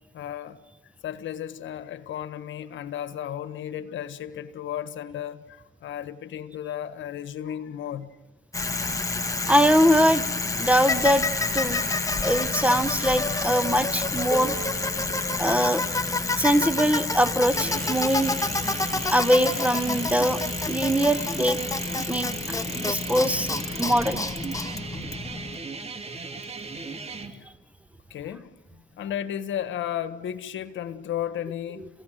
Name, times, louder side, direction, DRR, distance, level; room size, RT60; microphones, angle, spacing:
voice 1, 0.1-0.6 1.0-8.1 21.1-21.3 21.6-22.1 23.0-23.2 23.6-23.8 24.8-24.9 26.9-27.5 28.1-31.9, left 10 dB, 70° left, 1.5 m, -34 dB
Bicycle, 8.5-25.6, left 3 dB, 15° left, 2.0 m, -28 dB
voice 2, 9.5-10.3 10.6-11.3 11.5-11.8 12.2-14.5 15.4-15.8 16.4-18.3 19.1-20.4 20.7-21.6 22.1-22.3 22.7-23.5 23.8-24.2, equal, 5° right, 1.1 m, -22 dB
sound 1, 14.3-16.3, right 6 dB, 50° right, 2.8 m, -40 dB
sound 2, 17.5-27.3, right 3 dB, 30° right, 2.5 m, -37 dB
28.5 x 16.0 x 7.8 m
cardioid pair, 90°, 20 cm